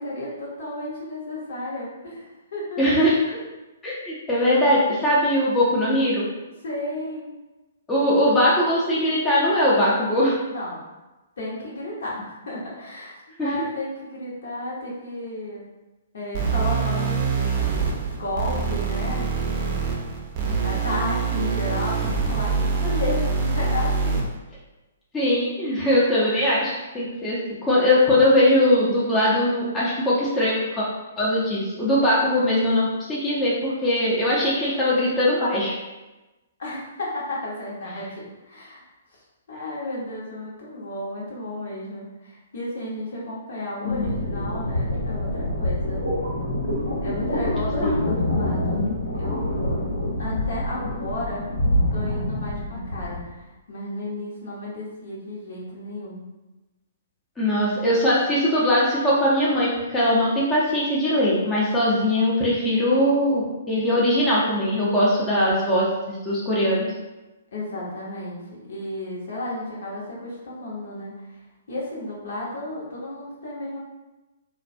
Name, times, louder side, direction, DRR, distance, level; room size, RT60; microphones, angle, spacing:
voice 1, 0.0-2.9 6.6-7.2 10.5-10.8 11.4-15.6 16.1-20.1 20.6-24.3 26.1-26.4 36.6-38.9 39.5-46.1 47.0-49.8 50.2-51.5 51.9-56.2 67.5-71.4 71.7-73.8, left 1 dB, 60° left, -5 dB, 0.8 m, -33 dB
voice 2, 2.8-3.4 3.8-6.3 7.9-10.4 13.4-13.5 25.1-30.9 31.2-35.7 57.4-66.9, left 1 dB, 15° left, -7 dB, 0.6 m, -21 dB
sound 1, 16.3-24.3, right 5 dB, 35° right, 0.5 m, -25 dB
sound 2, 43.8-53.3, left 1 dB, 90° left, 1.0 m, -26 dB
2.3 x 2.1 x 2.5 m, 1.1 s
figure-of-eight pair, 120°, 0 cm